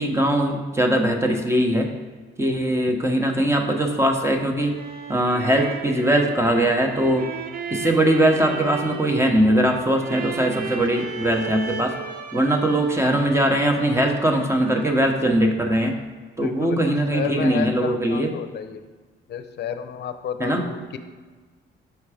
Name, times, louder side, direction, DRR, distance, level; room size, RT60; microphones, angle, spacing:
voice 1, 0.0-1.9 2.4-4.8 5.1-7.3 7.7-11.9 12.3-15.9 16.4-18.3 20.4-20.7, right 1 dB, 15° right, 3 dB, 0.9 m, -21 dB
sound 1, 4.6-15.2, right 6 dB, 50° right, 0.7 m, -36 dB
voice 2, 16.4-18.9 19.3-21.0, left 8 dB, 55° left, 9 dB, 0.6 m, -31 dB
5.7 x 4.4 x 4.9 m, 1.4 s
cardioid pair, 90°, 20 cm